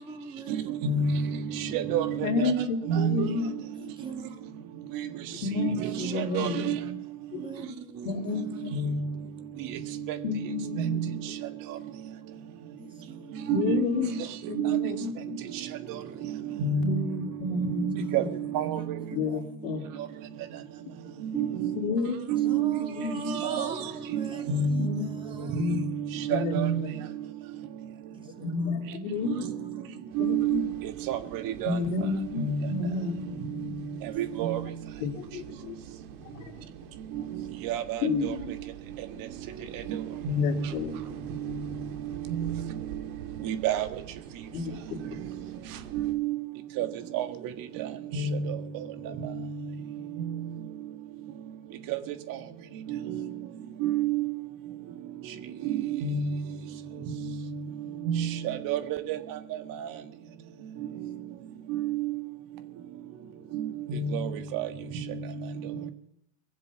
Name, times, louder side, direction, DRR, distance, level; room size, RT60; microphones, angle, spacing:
voice 1, 0.0-1.8 3.7-4.5 5.7-6.7 7.2-9.1 12.8-14.3 14.8-15.1 16.2-17.0 18.0-19.8 22.3-26.3 28.1-29.8 31.3-32.0, right 3 dB, 10° right, 3 dB, 2.6 m, -44 dB
voice 2, 0.8-2.5 2.9-3.3 5.6-6.8 8.7-9.1 10.1-10.2 10.8-11.1 13.5-13.8 14.6-14.9 16.6-17.0 17.8-18.2 18.5-18.8 21.3-21.7 22.3-22.8 23.4-23.7 24.1-24.9 25.4-26.8 30.2-30.6 31.1-31.2 31.4-31.8 32.4-32.7 33.6-33.7 34.2-34.6 37.6-38.3 39.9-40.7 41.4-41.6 42.3-42.6 43.4-43.9 45.9-46.4 46.8-46.9 47.1-47.2 47.8-47.9 48.1-48.6 49.3-49.5 51.9-52.0 53.8-54.3 55.6-56.4 57.2-57.4 58.1-59.2 61.7-62.1 63.5-64.7, right 6 dB, 50° right, 8 dB, 1.6 m, -28 dB
voice 3, 2.2-3.5 5.3-6.9 7.3-7.4 8.0-8.7 10.2-11.1 13.5-14.1 14.5-15.4 16.8-18.3 19.1-19.8 21.3-21.5 21.7-22.2 22.4-23.4 24.8-25.1 25.5-25.8 26.3-27.0 28.4-29.5 29.9-30.6 31.6-34.0 35.0-35.8 36.2-36.5 38.0-38.5 40.3-40.9 44.5-45.2, left 4 dB, 70° left, 3 dB, 2.9 m, -31 dB
sound 1, 30.1-46.1, right 8 dB, 80° right, 2.2 m, -46 dB
22.0 x 7.7 x 7.0 m, 0.79 s
hypercardioid pair, 100°, 43 cm